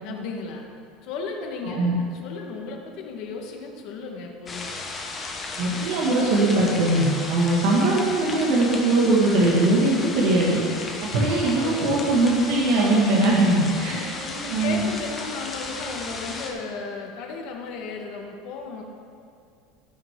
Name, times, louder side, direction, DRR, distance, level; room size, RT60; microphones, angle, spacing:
voice 1, 0.0-0.6 1.0-4.8 13.8-18.8, left 4 dB, 50° left, 2 dB, 1.4 m, -35 dB
sound 1, 4.5-16.5, left 3 dB, 20° left, 1.0 m, -35 dB
voice 2, 5.6-10.6 11.1-14.0 14.5-14.8, right 2 dB, 65° right, -5 dB, 1.9 m, -20 dB
16.5 x 6.4 x 3.7 m, 2.4 s
cardioid pair, 170°, 0 cm